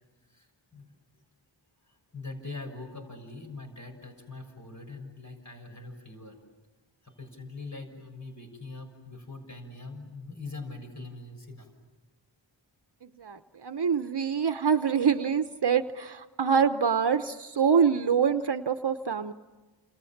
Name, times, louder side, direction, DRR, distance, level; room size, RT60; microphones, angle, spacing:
voice 1, 0.2-0.9 1.8-6.4 7.0-11.7, left 3 dB, 40° left, 3 dB, 6.4 m, -43 dB
voice 2, 13.2-19.3, right 6 dB, 60° right, 9 dB, 0.9 m, -25 dB
29.5 x 28.0 x 7.3 m, 1.2 s
wide cardioid pair, 55°, 45 cm